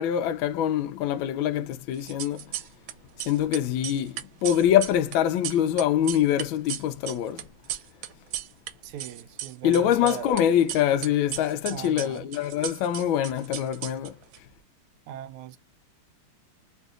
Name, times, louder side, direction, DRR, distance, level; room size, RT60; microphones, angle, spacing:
voice 1, 0.0-2.4 3.2-7.5 9.6-14.2, left 10 dB, 75° left, 1.3 m, -24 dB
sound 1, 2.0-2.9 3.2-8.7 9.0-10.4 10.7-14.4, right 12 dB, 75° right, 1.3 m, -36 dB
voice 2, 8.8-10.3 11.7-12.3 15.1-15.6, right 10 dB, 90° right, 1.5 m, -39 dB
3.7 x 2.7 x 2.4 m
omnidirectional pair, 2.4 m